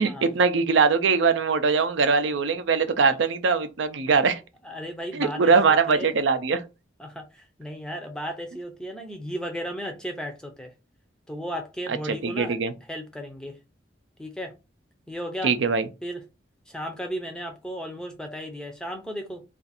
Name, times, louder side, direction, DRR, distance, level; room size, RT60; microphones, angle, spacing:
voice 1, 0.0-4.4 5.1-6.6 12.2-12.7 15.4-15.9, right 5 dB, 75° right, 0.5 m, -21 dB
voice 2, 4.6-6.1 7.0-10.7 11.3-13.6 14.2-14.5 15.1-15.5 16.0-16.2 16.7-19.4, equal, 5° left, 0.5 m, -35 dB
2.5 x 2.5 x 4.1 m
head